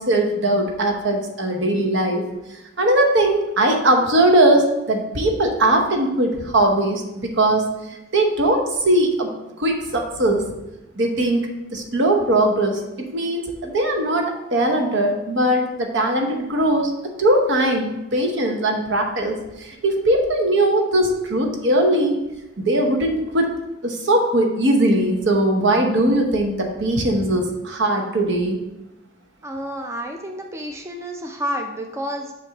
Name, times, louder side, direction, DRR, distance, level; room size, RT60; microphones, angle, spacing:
voice 1, 0.0-2.2 2.8-9.3 9.6-10.4 11.0-14.3 14.5-16.9 17.2-22.2 22.6-23.5 23.8-28.6, right 1 dB, 65° right, 3 dB, 1.0 m, -20 dB
voice 2, 29.4-32.3, equal, 15° right, 3 dB, 0.4 m, -30 dB
7.4 x 2.6 x 5.9 m, 0.96 s
head